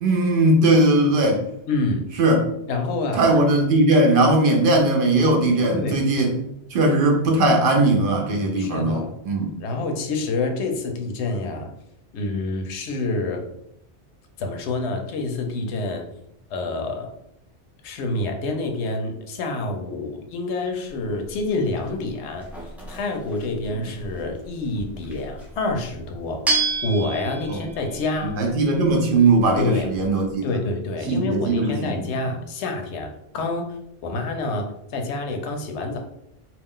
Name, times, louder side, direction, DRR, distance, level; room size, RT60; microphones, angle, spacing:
voice 1, 0.0-1.4 2.2-2.4 3.1-6.4 6.7-9.5 23.7-23.8 27.5-27.6 28.2-30.4 31.1-32.0, right 2 dB, 60° right, 2 dB, 0.6 m, -19 dB
voice 2, 1.7-2.1 2.7-3.3 5.7-6.1 8.6-9.1 9.6-11.7 12.1-13.4 14.4-16.0 16.5-17.1 17.8-22.5 22.9-28.3 29.6-29.9 30.4-33.7 34.0-36.0, left 2 dB, 85° left, 4 dB, 0.9 m, -27 dB
sound 1, 20.9-30.3, right 3 dB, ahead, 0.4 m, -32 dB
2.4 x 2.3 x 3.5 m, 0.78 s
omnidirectional pair, 1.1 m